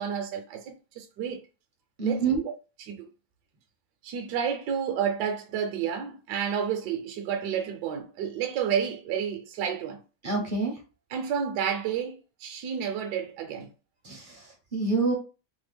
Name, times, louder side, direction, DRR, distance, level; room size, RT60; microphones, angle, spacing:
voice 1, 0.0-1.4 2.0-2.5 2.9-3.1 4.0-10.0 11.1-13.7, right 8 dB, 70° right, 1.1 m, -30 dB
voice 2, 2.0-2.4 10.2-10.8 14.0-15.1, right 4 dB, 45° right, 0.7 m, -27 dB
3.3 x 2.1 x 3.4 m
omnidirectional pair, 2.0 m